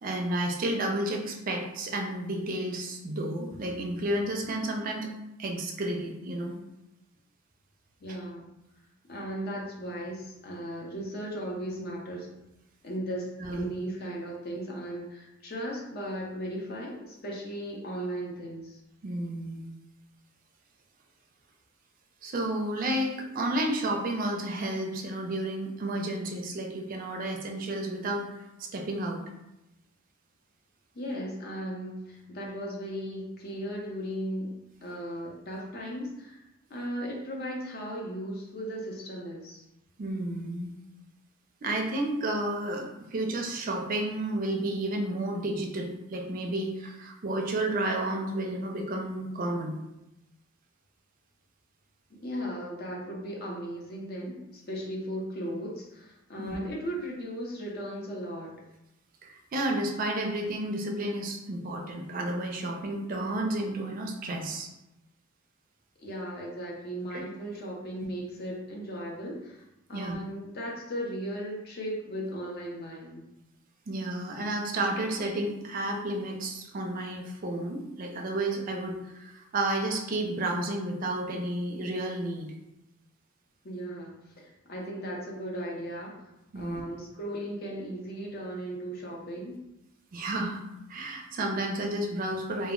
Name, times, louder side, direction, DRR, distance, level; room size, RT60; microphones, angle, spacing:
voice 1, 0.0-5.1 5.4-6.5 13.4-13.6 19.0-19.7 22.2-28.3 28.6-29.2 40.0-40.7 41.6-49.8 56.4-56.6 59.2-64.7 67.1-67.2 69.9-70.2 73.9-82.5 86.5-86.8 90.1-90.6 90.9-92.7, right 1 dB, 40° right, 2 dB, 0.4 m, -31 dB
voice 2, 8.0-8.5 9.1-12.3 12.8-18.8 30.9-34.6 34.8-36.4 36.7-39.6 52.2-58.5 66.0-69.6 69.9-73.3 83.6-84.1 84.4-86.2 86.5-89.6, equal, 50° left, -2 dB, 0.6 m, -36 dB
2.1 x 2.0 x 3.6 m, 0.91 s
head